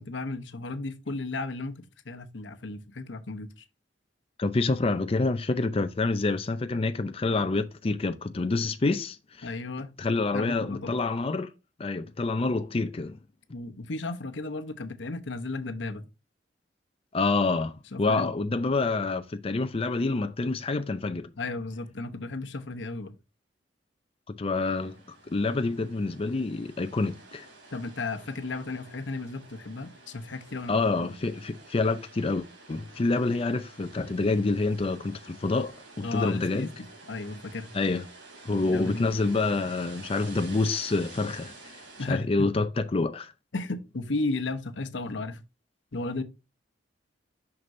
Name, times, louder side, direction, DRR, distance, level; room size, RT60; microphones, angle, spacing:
voice 1, 0.0-3.6 9.4-9.9 10.3-11.0 13.5-16.1 17.9-18.3 21.4-23.1 27.7-31.2 36.0-36.7 37.1-37.7 38.6-39.2 42.0-42.3 43.5-45.4 45.9-46.2, left 3 dB, 80° left, 0.9 m, -34 dB
voice 2, 4.4-9.5 10.0-11.5 11.8-13.2 17.1-21.3 24.4-27.5 30.7-35.8 36.1-36.7 37.7-38.0 38.4-41.7 42.1-43.3, left 3 dB, 30° left, 0.5 m, -27 dB
sound 1, 24.5-42.1, right 3 dB, 75° right, 3.0 m, -50 dB
6.3 x 6.0 x 2.6 m
head